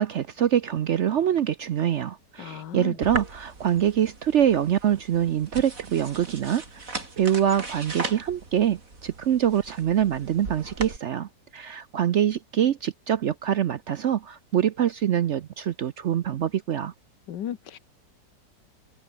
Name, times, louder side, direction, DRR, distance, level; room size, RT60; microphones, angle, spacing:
voice 1, 0.0-6.9 7.2-16.9, right 10 dB, 65° right, 0.7 m, -25 dB
voice 2, 2.4-3.0 17.3-17.8, left 10 dB, 80° left, 1.8 m, -34 dB
sound 1, 3.0-11.0, right 3 dB, 50° right, 4.6 m, -38 dB
omnidirectional pair, 1.9 m